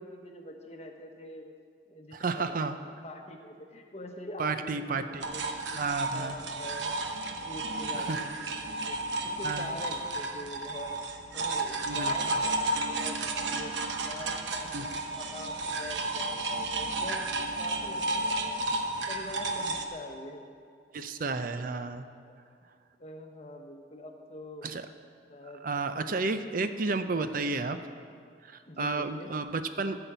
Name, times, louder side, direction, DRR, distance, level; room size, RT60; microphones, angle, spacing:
voice 1, 0.0-1.5 1.9-2.8 3.0-5.8 6.1-7.0 7.2-9.0 9.2-11.0 11.3-17.3 17.6-18.8 19.1-20.4 22.3-22.4 23.0-24.7 25.3-26.2 26.4-27.5 28.7-29.3, left 1 dB, 35° left, 3 dB, 1.1 m, -44 dB
voice 2, 2.1-2.8 4.4-5.3 5.7-6.4 7.9-8.2 9.4-9.8 11.9-12.4 14.7-15.0 20.9-22.1 24.6-24.9 25.6-27.8 28.4-30.0, right 3 dB, 50° right, 9 dB, 0.5 m, -32 dB
sound 1, 5.2-19.9, right 2 dB, 80° right, 1.0 m, -32 dB
13.5 x 5.9 x 8.0 m, 2.3 s
head